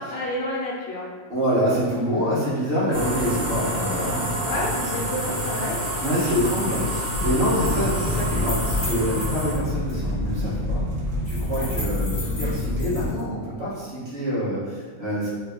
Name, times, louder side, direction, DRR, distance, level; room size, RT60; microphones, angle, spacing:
voice 1, 0.1-1.0 4.4-6.2 6.5-6.6 7.4-7.8 11.5-11.8 12.3-12.5, left 1 dB, 60° left, -5 dB, 1.1 m, -31 dB
voice 2, 1.3-4.3 6.0-10.8 11.3-15.3, equal, 45° right, -9 dB, 1.3 m, -26 dB
sound 1, 2.9-9.5, equal, 85° right, 1.4 m, -28 dB
sound 2, 5.3-9.6 9.9-10.0 11.2-13.2, left 1 dB, 25° left, 0.7 m, -38 dB
sound 3, 7.1-13.1, left 1 dB, 65° right, 0.9 m, -27 dB
3.2 x 2.4 x 3.4 m, 1.5 s
omnidirectional pair, 1.5 m